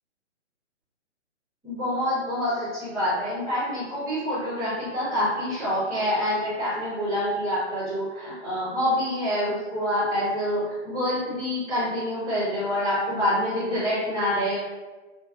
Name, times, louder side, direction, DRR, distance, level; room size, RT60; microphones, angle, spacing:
voice 1, 1.6-14.6, equal, 5° right, -15 dB, 0.5 m, -26 dB
4.3 x 2.0 x 2.6 m, 1.2 s
hypercardioid pair, 170°, 37 cm